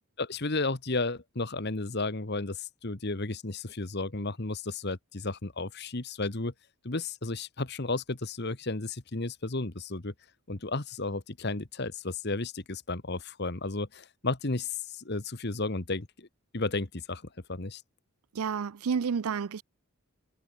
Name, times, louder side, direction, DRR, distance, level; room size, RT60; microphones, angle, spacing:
voice 1, 0.2-6.5 6.8-10.1 10.5-16.3 16.5-17.2 17.5-17.8, left 3 dB, 50° left, 1.5 m, -33 dB
voice 2, 18.3-19.6, right 6 dB, 85° right, 0.5 m, -30 dB
head